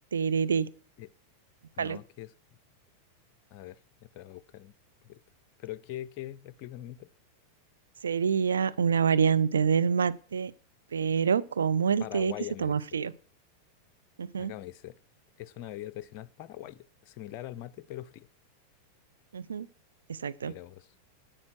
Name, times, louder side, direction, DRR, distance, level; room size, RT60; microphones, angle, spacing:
voice 1, 0.1-0.7 1.8-2.0 8.0-10.5 10.9-12.3 12.6-13.1 14.2-14.5 19.3-19.7 20.1-20.6, right 6 dB, 70° right, 0.5 m, -26 dB
voice 2, 1.8-2.3 3.5-4.7 5.0-5.2 5.6-7.1 12.0-13.0 14.4-15.0 15.4-18.3 20.4-20.9, left 13 dB, 45° left, 0.5 m, -42 dB
9.6 x 8.9 x 5.9 m
figure-of-eight pair, 90°, 0 cm